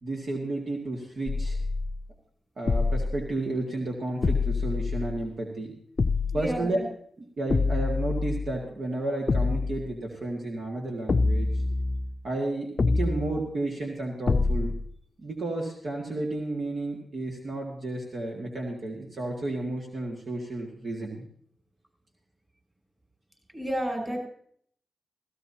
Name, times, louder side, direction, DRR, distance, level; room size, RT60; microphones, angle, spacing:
voice 1, 0.0-1.6 2.6-5.7 6.3-6.8 7.4-11.6 12.2-14.8 15.2-21.2, right 2 dB, 65° right, -1 dB, 2.1 m, -32 dB
sound 1, 1.3-2.0 2.7-3.3 4.2-5.3 6.0-6.6 7.5-8.6 9.3-9.9 11.1-12.2 12.8-13.4 14.3-14.9, left 3 dB, 50° left, 0.5 m, -26 dB
voice 2, 6.3-6.8 23.5-24.2, equal, 20° right, 1 dB, 7.3 m, -31 dB
16.5 x 16.0 x 2.9 m, 0.62 s
cardioid pair, 50°, 0 cm